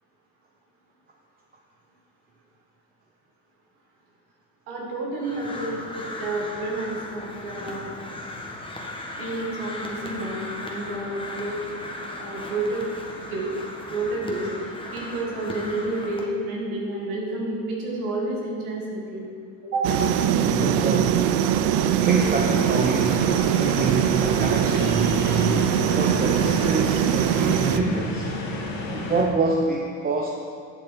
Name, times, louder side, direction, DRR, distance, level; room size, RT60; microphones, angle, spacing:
voice 1, 4.7-7.9 9.2-11.6 12.2-12.8 13.3-13.5 13.9-19.2 19.6-19.9, right 2 dB, 90° right, -3 dB, 2.2 m, -30 dB
Crow, 5.2-16.2, left 2 dB, 10° left, 1.3 m, -37 dB
sound 1, 19.8-27.8, right 9 dB, 75° right, 0.6 m, -22 dB
voice 2, 20.3-21.4 22.0-28.3 28.9-30.3, right 3 dB, 20° right, 1 dB, 0.8 m, -26 dB
sound 2, 22.0-29.2, left 2 dB, 55° left, 2.3 m, -32 dB
10.5 x 6.6 x 4.3 m, 2.3 s
supercardioid pair, 85°, 42 cm